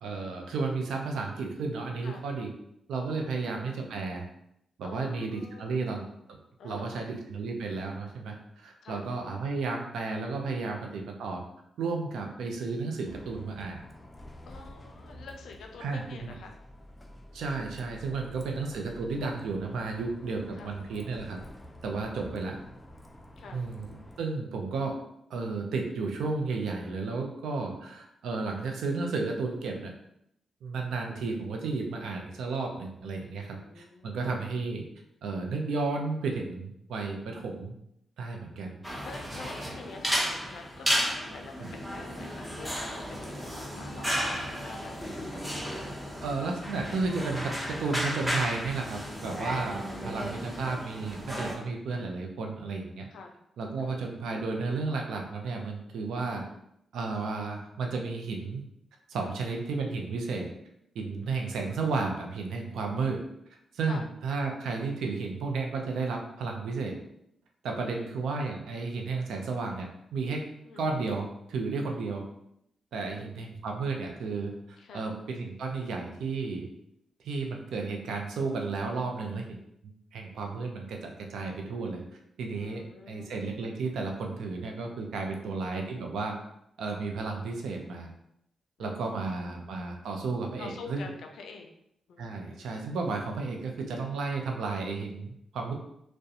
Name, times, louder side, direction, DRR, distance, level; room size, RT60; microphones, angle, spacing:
voice 1, 0.0-2.5 2.9-4.3 4.8-6.4 6.6-11.4 11.8-13.8 15.8-16.3 17.3-21.4 21.8-22.6 23.5-25.0 25.3-29.9 30.6-34.8 35.2-37.7 38.2-38.8 41.6-41.7 46.2-53.1 53.6-56.4 56.9-58.6 59.1-60.5 60.9-63.2 63.7-67.0 67.6-70.5 70.8-72.2 72.9-76.7 77.2-79.6 79.8-82.0 82.4-86.4 86.8-88.1 88.8-91.1 92.2-95.7, right 4 dB, 80° right, 2 dB, 0.4 m, -33 dB
voice 2, 3.2-3.7 4.8-5.8 6.6-7.2 8.8-9.1 14.4-16.6 18.1-18.8 20.5-20.7 23.4-23.7 31.0-31.2 33.2-34.2 37.1-37.5 39.0-45.4 47.8-48.0 49.7-50.1 53.1-53.3 53.8-54.1 56.4-56.6 59.2-59.4 61.3-61.7 63.8-64.0 67.7-68.5 70.6-70.9 73.0-73.4 74.8-75.1 82.5-83.4 85.3-85.5 88.8-89.6 90.6-91.7 92.1-92.7, left 4 dB, 75° left, 3 dB, 0.4 m, -48 dB
Bus, 13.0-24.2, left 1 dB, 20° left, 0.4 m, -49 dB
sound 1, 38.8-51.5, equal, 10° right, 0.7 m, -33 dB
2.4 x 2.1 x 2.7 m, 0.76 s
supercardioid pair, 50°, 0 cm